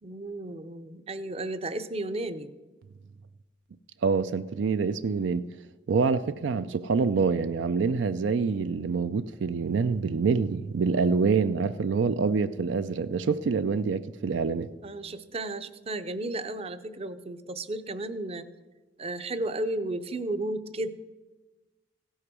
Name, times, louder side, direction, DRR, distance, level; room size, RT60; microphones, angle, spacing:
voice 1, 0.0-2.5 14.8-18.5 19.0-20.9, right 2 dB, 35° right, 0.6 m, -33 dB
voice 2, 4.0-5.4 5.9-14.7, right 5 dB, 75° right, 0.4 m, -26 dB
16.5 x 6.4 x 6.1 m
head